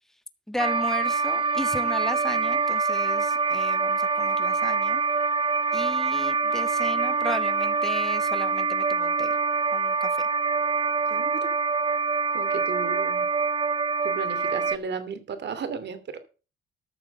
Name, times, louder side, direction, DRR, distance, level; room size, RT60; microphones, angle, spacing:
voice 1, 0.5-5.0 5.7-9.3 9.7-10.3, left 1 dB, ahead, 10 dB, 1.5 m, -35 dB
sound 1, 0.6-14.8, right 4 dB, 25° right, 0.5 m, -25 dB
voice 2, 11.1-11.5 12.3-13.2 14.0-16.2, right 6 dB, 60° right, 11 dB, 2.8 m, -34 dB
13.5 x 6.5 x 6.6 m, 0.35 s
cardioid pair, 90°, 20 cm